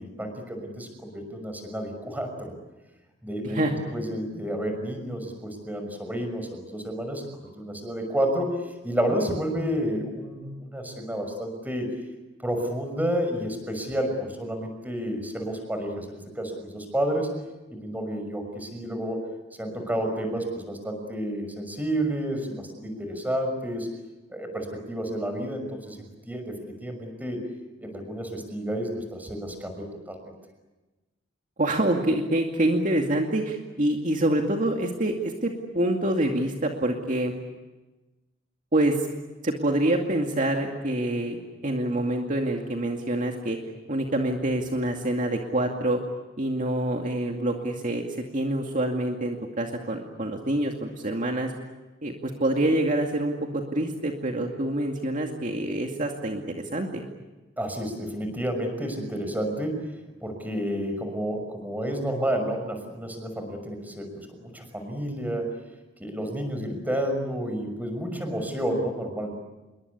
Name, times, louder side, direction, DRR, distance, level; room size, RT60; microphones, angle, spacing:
voice 1, 0.0-2.5 3.2-3.6 3.9-11.9 12.4-17.3 17.7-19.3 19.6-23.9 24.3-26.0 26.3-27.5 27.8-30.3 57.6-59.9 60.2-65.5 66.0-69.3, equal, 10° right, 6 dB, 6.1 m, -30 dB
voice 2, 31.6-37.3 38.7-39.1 39.4-41.4 41.6-43.6 43.9-46.0 46.4-51.5 52.0-56.4 56.7-57.0, right 1 dB, 45° right, 2 dB, 2.3 m, -26 dB
27.5 x 23.0 x 8.4 m, 1.1 s
head